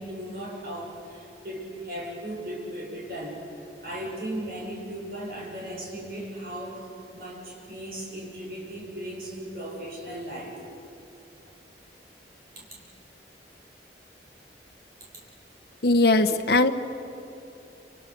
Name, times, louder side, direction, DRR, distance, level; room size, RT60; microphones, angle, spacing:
voice 1, 0.0-10.6 12.6-12.7, right 1 dB, 55° right, -3 dB, 7.3 m, -37 dB
voice 2, 15.8-16.7, left 2 dB, 60° left, 6 dB, 1.1 m, -20 dB
28.5 x 27.0 x 6.9 m, 2.7 s
head